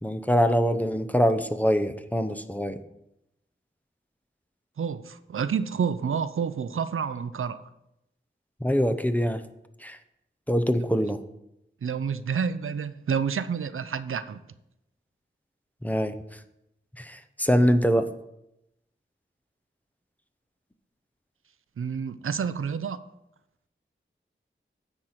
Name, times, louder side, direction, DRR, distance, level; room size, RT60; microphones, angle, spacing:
voice 1, 0.0-2.8 8.6-9.4 9.8-10.0 10.5-11.2 15.8-16.2 17.0-18.1, equal, 5° left, 9 dB, 0.7 m, -24 dB
voice 2, 4.8-7.7 11.8-14.4 21.8-23.0, right 6 dB, 90° right, 13 dB, 0.5 m, -29 dB
9.6 x 4.5 x 6.5 m, 0.84 s
wide cardioid pair, 50°, 21 cm